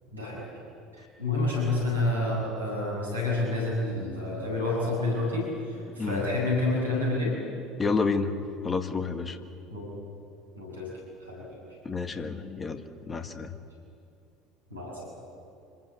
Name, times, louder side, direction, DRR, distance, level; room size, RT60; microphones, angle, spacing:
voice 1, 0.1-0.4 1.0-7.3 9.7-9.9 10.6-10.9 11.2-11.6 14.7-15.1, left 2 dB, 85° right, -3 dB, 7.7 m, -29 dB
voice 2, 7.8-8.4 8.6-9.4 11.9-13.5, left 4 dB, 25° left, 8 dB, 1.6 m, -30 dB
27.0 x 20.5 x 8.2 m, 2.6 s
figure-of-eight pair, 65°, 0 cm